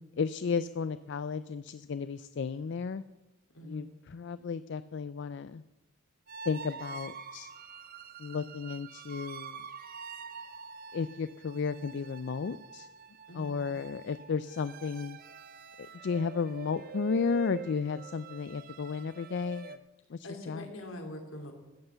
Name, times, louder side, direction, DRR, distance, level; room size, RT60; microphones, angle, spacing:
voice 1, 0.2-3.0 3.6-5.6 6.5-7.5 8.2-9.6 10.9-12.9 13.3-15.2 16.0-19.8 20.1-20.6, left 5 dB, 55° left, 14 dB, 0.4 m, -33 dB
voice 2, 3.5-3.9 13.3-13.6 20.2-21.5, left 1 dB, 75° left, 3 dB, 2.6 m, -43 dB
sound 1, 6.3-19.8, right 6 dB, 45° right, 0.7 m, -46 dB
14.5 x 8.0 x 7.9 m, 1.1 s
head